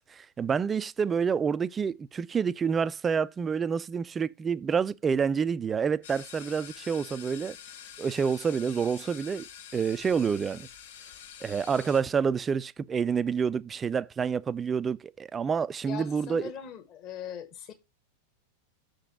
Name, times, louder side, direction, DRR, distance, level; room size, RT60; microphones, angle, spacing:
voice 1, 0.1-7.6 8.0-9.5 9.7-10.7 11.4-16.5, right 6 dB, 20° right, 0.3 m, -28 dB
sound 1, 6.0-12.0, left 9 dB, 55° left, 0.8 m, -47 dB
voice 2, 15.9-17.7, left 8 dB, 35° left, 1.3 m, -40 dB
6.5 x 3.9 x 6.0 m
figure-of-eight pair, 90°, 0 cm